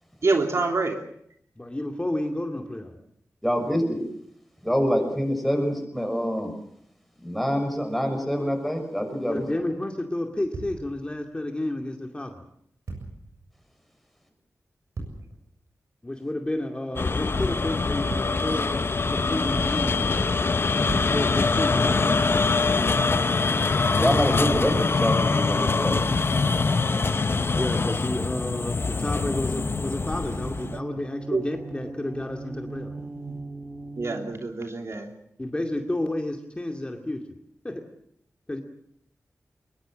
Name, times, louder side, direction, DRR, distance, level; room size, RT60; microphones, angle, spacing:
voice 1, 0.2-1.0 31.3-31.4 33.2-33.3 34.0-35.1, right 3 dB, 60° right, 4 dB, 3.1 m, -26 dB
voice 2, 1.6-3.0 9.2-12.4 16.0-18.8 19.1-20.3 20.9-22.1 22.4-22.9 27.5-33.0 35.4-37.2 37.6-37.8 38.5-38.6, left 1 dB, 20° left, 3 dB, 2.4 m, -31 dB
voice 3, 3.4-4.0 4.6-6.5 7.2-9.4 23.9-26.0, equal, ahead, 4 dB, 6.6 m, -25 dB
sound 1, 10.5-11.3 12.9-13.4 15.0-15.5 18.1-18.7 20.9-22.3 24.5-25.4, right 3 dB, 75° right, 7.3 m, -39 dB
sound 2, 17.0-30.8, left 4 dB, 45° left, 0.8 m, -24 dB
sound 3, 25.0-34.4, right 3 dB, 20° right, 1.8 m, -40 dB
23.0 x 22.0 x 7.6 m, 0.70 s
wide cardioid pair, 95°, 5 cm